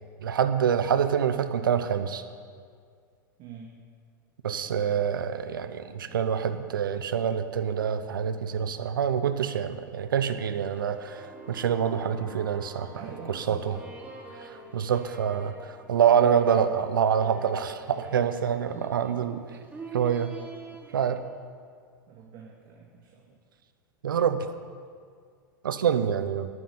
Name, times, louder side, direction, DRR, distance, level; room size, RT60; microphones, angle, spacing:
voice 1, 0.2-2.2 4.4-12.9 13.3-13.8 14.4-19.4 19.9-20.3 20.9-21.2 24.0-24.5 25.6-26.5, right 8 dB, 80° right, 10 dB, 0.9 m, -26 dB
voice 2, 3.4-3.8 6.0-6.3 12.9-13.8 18.7-18.9 19.2-19.3 22.1-23.4, right 5 dB, 45° right, -1 dB, 2.1 m, -45 dB
sound 1, 10.0-21.2, right 3 dB, 15° right, 2.9 m, -46 dB
10.0 x 9.9 x 8.9 m, 2.1 s
hypercardioid pair, 95°, 11 cm